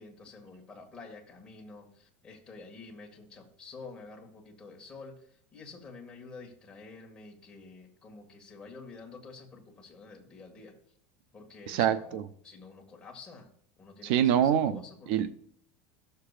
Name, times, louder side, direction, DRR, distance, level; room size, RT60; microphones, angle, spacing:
voice 1, 0.0-10.7 11.3-13.5 13.8-15.3, left 4 dB, 15° left, 1.7 m, -49 dB
voice 2, 11.7-12.2 14.0-14.8 15.1-15.3, right 9 dB, 70° right, 0.6 m, -25 dB
15.5 x 6.7 x 2.4 m
supercardioid pair, 155°, 6 cm